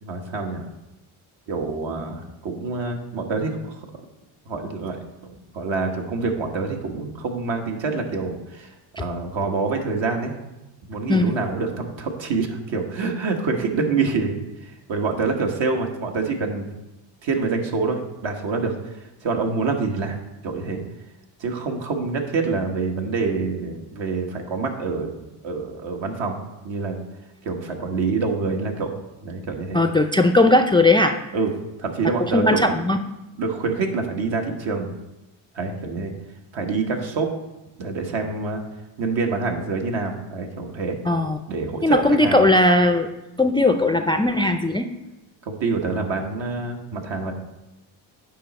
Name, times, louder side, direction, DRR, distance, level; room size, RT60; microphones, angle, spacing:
voice 1, 0.0-0.6 1.5-3.8 4.4-10.3 10.9-14.3 14.6-16.7 17.2-20.2 20.4-20.8 21.4-25.1 25.4-26.4 26.6-27.0 27.4-28.9 29.2-29.8 31.3-31.5 31.8-32.7 33.4-34.9 35.5-36.1 36.5-37.3 37.8-38.6 39.0-41.0 41.5-42.4 45.5-47.3, right 4 dB, 65° right, 3 dB, 1.5 m, -26 dB
voice 2, 29.7-31.2 32.3-33.0 41.1-41.4 41.8-43.1 43.4-44.9, left 2 dB, 10° left, 6 dB, 0.4 m, -18 dB
9.3 x 5.1 x 4.2 m, 0.99 s
supercardioid pair, 75°, 48 cm